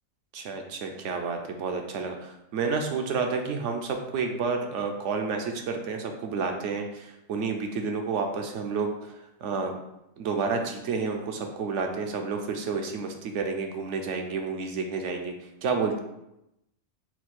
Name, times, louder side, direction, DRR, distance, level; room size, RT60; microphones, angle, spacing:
voice 1, 0.3-9.1 9.4-9.7 10.2-15.3 15.6-16.0, right 4 dB, 70° right, 4 dB, 0.8 m, -30 dB
4.3 x 2.3 x 4.1 m, 0.86 s
omnidirectional pair, 1.4 m